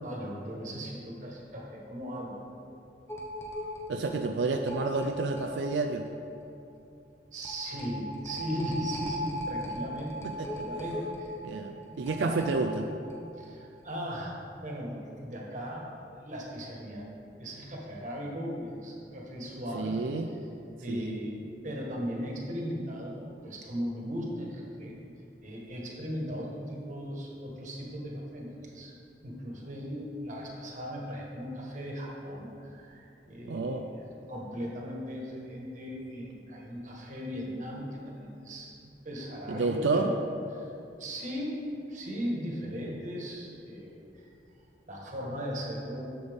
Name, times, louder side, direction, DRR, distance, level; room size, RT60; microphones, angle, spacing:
voice 1, 0.0-2.4 7.3-11.3 11.9-12.4 13.4-17.1 17.4-20.0 20.8-23.2 23.4-25.0 25.4-28.9 29.2-38.7 39.0-40.2 40.5-40.7 41.0-41.6 41.9-44.3 44.9-46.2, equal, 45° right, -2 dB, 1.5 m, -38 dB
sound 1, 3.1-5.8 6.1-6.2 6.5-6.6 7.4-13.2 13.5-13.6 13.8-13.9, equal, 15° left, 0.9 m, -38 dB
voice 2, 3.9-6.0 10.2-10.7 11.4-12.9 19.7-20.3 20.9-21.2 33.5-33.9 39.5-40.1 42.8-42.9, right 3 dB, 90° right, 4 dB, 0.4 m, -30 dB
10.0 x 7.0 x 3.6 m, 2.6 s
head